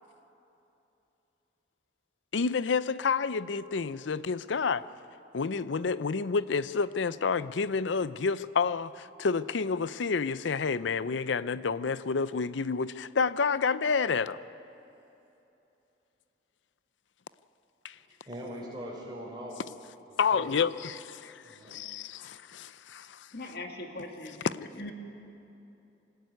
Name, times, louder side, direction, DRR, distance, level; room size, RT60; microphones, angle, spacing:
voice 1, 2.3-4.8 5.3-14.4 17.8-17.9 20.2-23.3, left 5 dB, 80° left, 16 dB, 0.5 m, -29 dB
voice 2, 17.9-19.6 20.1-20.5 21.4-21.7, equal, 25° right, -4 dB, 5.0 m, -41 dB
voice 3, 23.3-24.9, left 2 dB, 55° left, 3 dB, 2.2 m, -41 dB
25.5 x 14.0 x 9.5 m, 2.9 s
head